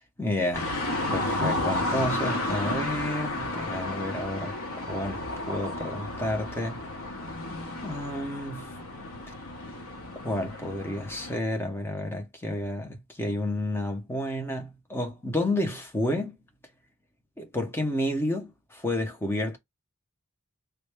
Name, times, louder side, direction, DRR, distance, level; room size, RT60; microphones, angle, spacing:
voice 1, 0.2-0.8 1.1-4.6 4.9-6.9 7.8-8.7 10.2-16.3 17.4-19.6, left 1 dB, 10° left, 0.6 m, -30 dB
sound 1, 0.5-11.4, left 1 dB, 80° left, 0.9 m, -32 dB
3.4 x 2.2 x 3.3 m
head